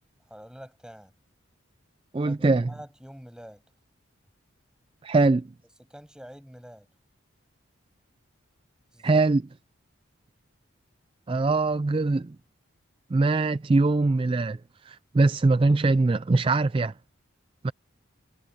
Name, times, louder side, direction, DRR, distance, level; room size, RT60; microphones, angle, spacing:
voice 1, 0.3-1.1 2.2-3.6 5.8-6.9 8.9-9.3 12.0-12.2, equal, 5° right, 7.0 m, -46 dB
voice 2, 2.1-2.7 5.0-5.5 9.0-9.4 11.3-12.4 13.1-14.6 14.9-16.9 17.6-17.7, right 3 dB, 25° right, 0.3 m, -22 dB
head